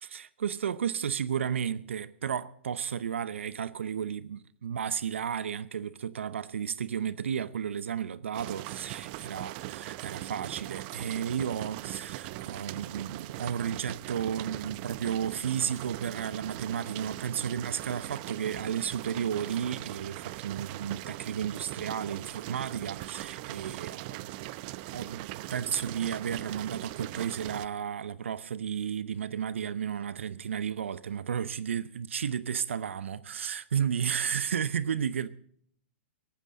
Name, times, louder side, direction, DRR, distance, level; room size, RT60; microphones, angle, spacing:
voice 1, 0.0-24.3 24.9-35.3, right 8 dB, 75° right, 0.8 m, -33 dB
sound 1, 8.3-27.7, right 17 dB, 45° right, 0.7 m, -40 dB
18.0 x 14.5 x 3.8 m
hypercardioid pair, 110°, 7 cm